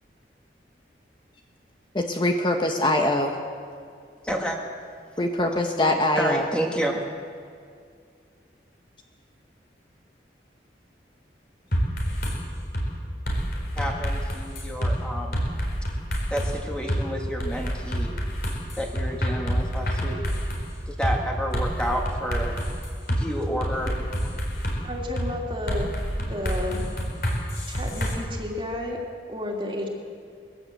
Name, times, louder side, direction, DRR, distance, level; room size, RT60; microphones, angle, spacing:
voice 1, 1.9-3.3 5.2-6.5, left 1 dB, 25° left, 3 dB, 1.2 m, -23 dB
voice 2, 4.3-4.6 6.2-7.1 13.8-15.4 16.3-18.2 18.8-20.2 20.9-22.6 23.1-23.9 27.6-27.7, equal, 5° left, 0 dB, 1.9 m, -30 dB
sound 1, 11.7-12.4 12.7-12.9 13.3-14.9 15.3-16.5 16.9-17.0 17.4-20.6 21.0-21.2 21.5-23.2 23.6-24.8 25.2-25.3 25.7-28.1, equal, 55° left, 4.5 m, -27 dB
voice 3, 23.4-23.7 24.8-26.9 27.7-29.0 29.3-29.9, left 1 dB, 30° right, 0 dB, 2.7 m, -32 dB
21.0 x 16.0 x 7.9 m, 2.2 s
head